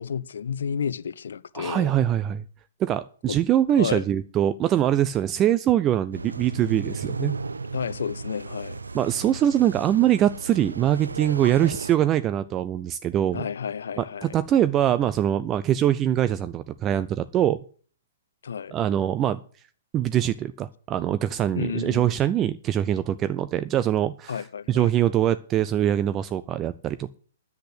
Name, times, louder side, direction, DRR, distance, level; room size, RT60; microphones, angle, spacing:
voice 1, 0.0-1.9 3.3-3.4 3.7-4.0 7.7-8.8 13.3-14.4 18.4-18.7 21.5-22.1 24.3-24.9, left 7 dB, 65° left, 0.6 m, -31 dB
voice 2, 1.5-2.4 2.8-7.4 8.9-13.5 14.0-17.6 18.7-19.4 19.9-27.1, right 11 dB, 25° right, 0.5 m, -23 dB
sound 1, 6.1-12.0, right 4 dB, 80° right, 0.6 m, -35 dB
10.5 x 8.2 x 8.2 m
figure-of-eight pair, 120°, 0 cm